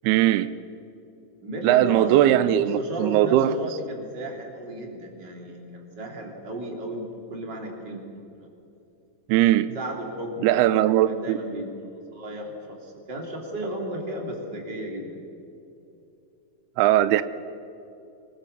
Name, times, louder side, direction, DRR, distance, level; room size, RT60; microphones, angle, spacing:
voice 1, 0.0-0.5 1.6-3.5 9.3-9.7 10.4-11.4 16.8-17.2, right 13 dB, 90° right, 2.6 m, -19 dB
voice 2, 1.4-8.0 8.3-8.5 9.7-10.8 11.1-11.8 12.1-15.2, right 1 dB, 30° right, 3.6 m, -34 dB
25.0 x 22.0 x 6.8 m
omnidirectional pair, 4.4 m